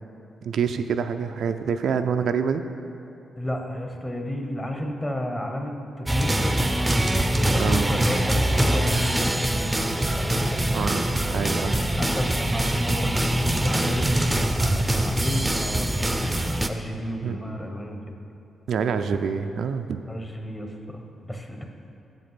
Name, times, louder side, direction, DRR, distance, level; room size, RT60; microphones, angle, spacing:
voice 1, 0.4-2.6 7.6-7.9 10.7-11.8 17.2-17.4 18.7-20.0, right 6 dB, 70° right, 8 dB, 0.3 m, -26 dB
voice 2, 3.4-6.6 7.3-10.6 12.0-18.0 20.1-21.7, equal, 20° left, 3 dB, 1.0 m, -32 dB
sound 1, 6.1-16.7, right 1 dB, 15° right, 0.5 m, -23 dB
7.3 x 5.3 x 5.7 m, 2.8 s
supercardioid pair, 55°, 0 cm